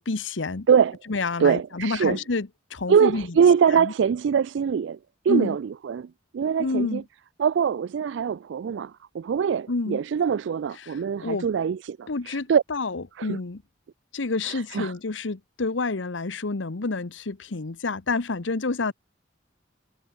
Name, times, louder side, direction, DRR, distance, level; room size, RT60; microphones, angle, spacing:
voice 1, 0.0-0.7 1.1-3.3 3.7-3.9 5.3-5.6 6.6-7.0 9.7-10.0 10.8-11.5 12.1-13.6 14.1-18.9, left 3 dB, 80° left, 1.0 m, -29 dB
voice 2, 1.4-2.2 2.9-5.0 5.2-7.0 7.4-12.6 13.2-13.4 14.4-14.9, right 7 dB, 75° right, 0.3 m, -23 dB
head